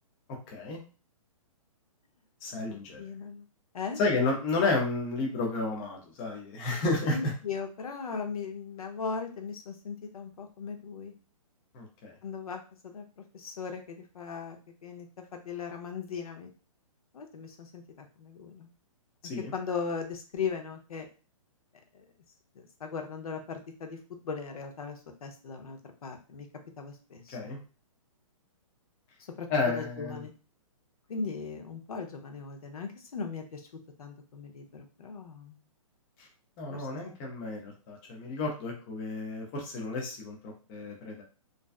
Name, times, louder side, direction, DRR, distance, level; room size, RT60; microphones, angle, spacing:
voice 1, 0.5-0.8 2.4-3.0 4.0-7.3 11.7-12.2 19.3-19.5 27.3-27.6 29.5-30.2 36.2-36.3 36.6-41.2, left 3 dB, 15° left, 0 dB, 0.4 m, -31 dB
voice 2, 3.0-3.5 3.7-4.0 7.1-11.1 12.2-15.1 15.3-16.5 17.1-18.7 19.5-21.1 21.9-22.0 22.6-24.0 24.2-26.5 26.8-27.4 29.4-30.3 31.1-33.7 34.0-35.6 36.7-36.9, left 5 dB, 85° left, 4 dB, 0.7 m, -38 dB
2.5 x 2.2 x 2.3 m, 0.35 s
hypercardioid pair, 160°, 18 cm